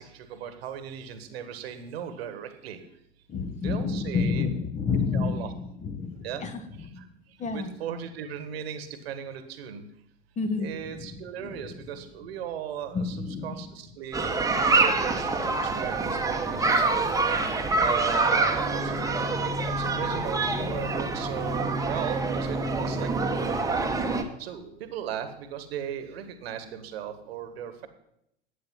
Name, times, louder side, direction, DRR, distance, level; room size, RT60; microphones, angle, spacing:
voice 1, 0.0-2.8 3.6-4.5 5.1-5.5 6.2-6.4 6.8-7.0 7.5-9.8 10.6-15.9 16.3-16.9 17.7-19.0 19.7-23.6 24.4-27.9, right 9 dB, 60° right, 10 dB, 1.5 m, -37 dB
voice 2, 3.3-5.5 5.8-6.5 6.9-7.0 7.4-7.7 10.4-11.5 12.9-13.5, left 5 dB, 20° left, 9 dB, 0.9 m, -29 dB
sound 1, 14.1-24.2, right 3 dB, 10° right, 1.1 m, -26 dB
11.5 x 8.8 x 5.6 m, 0.78 s
figure-of-eight pair, 85°, 35 cm